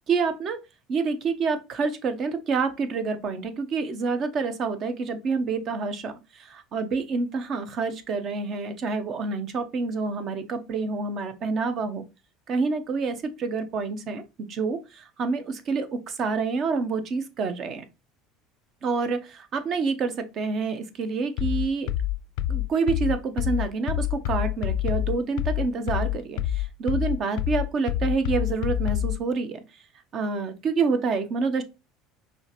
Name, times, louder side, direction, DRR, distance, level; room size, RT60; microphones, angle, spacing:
voice 1, 0.1-0.6 0.9-12.0 12.5-14.2 14.5-17.8 18.8-21.9 22.5-29.6 30.1-31.6, right 4 dB, 45° right, 0.8 m, -28 dB
sound 1, 21.4-29.2, left 12 dB, 75° left, 0.4 m, -26 dB
5.4 x 3.3 x 3.0 m
supercardioid pair, 115°, 0 cm